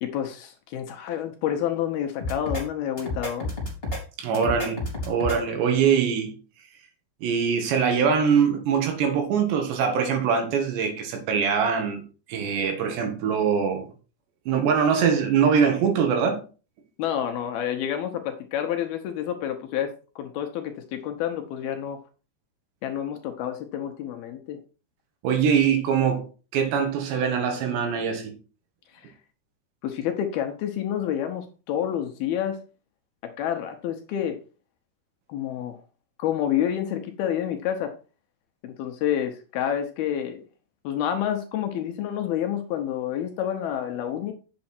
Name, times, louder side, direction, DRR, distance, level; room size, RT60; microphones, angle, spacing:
voice 1, 0.0-3.5 17.0-22.0 22.8-24.6 28.9-29.1 29.8-32.6 33.2-34.4 35.3-35.8 36.2-37.9 38.6-40.4 40.8-44.3, left 10 dB, 75° left, 2.5 m, -29 dB
sound 1, 2.2-2.6 3.0-4.0 4.3-5.4, left 1 dB, 15° left, 2.8 m, -30 dB
voice 2, 4.2-6.4 7.2-12.0 12.3-13.9 14.5-16.4 25.2-26.2 26.5-28.3, right 6 dB, 75° right, 3.9 m, -23 dB
8.6 x 7.0 x 4.4 m
omnidirectional pair, 5.1 m